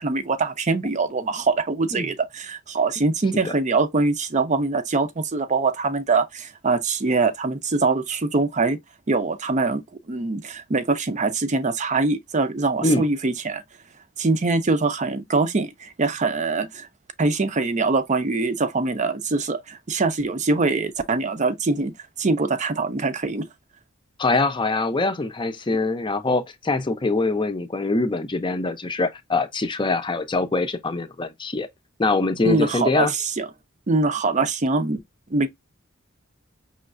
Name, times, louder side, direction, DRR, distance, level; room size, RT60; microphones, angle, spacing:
voice 1, 0.0-8.8 9.1-9.8 10.1-13.6 14.2-16.9 17.2-23.5 32.4-33.5 33.9-35.0 35.3-35.5, right 3 dB, 35° right, 0.5 m, -23 dB
voice 2, 24.2-31.7 32.0-33.1, left 3 dB, 25° left, 0.6 m, -23 dB
5.5 x 3.1 x 2.4 m
head